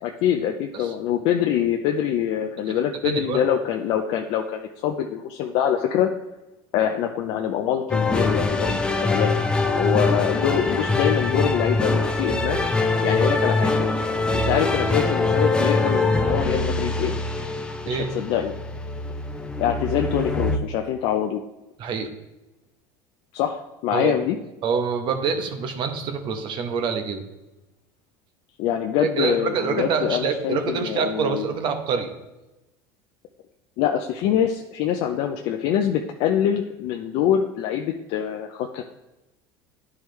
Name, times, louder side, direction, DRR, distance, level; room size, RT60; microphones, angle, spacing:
voice 1, 0.0-6.1 6.7-9.3 9.8-13.8 14.3-17.1 17.8-18.5 19.6-21.4 23.3-24.4 28.6-31.5 33.8-38.8, left 9 dB, 65° left, 3 dB, 0.6 m, -24 dB
voice 2, 3.0-3.4 17.9-18.1 21.8-22.1 23.9-24.1 24.6-27.2 29.0-32.1, right 5 dB, 50° right, 7 dB, 1.0 m, -26 dB
sound 1, 7.9-20.6, left 3 dB, 10° left, 0.7 m, -23 dB
10.5 x 4.8 x 3.2 m, 1.0 s
supercardioid pair, 100°, 10 cm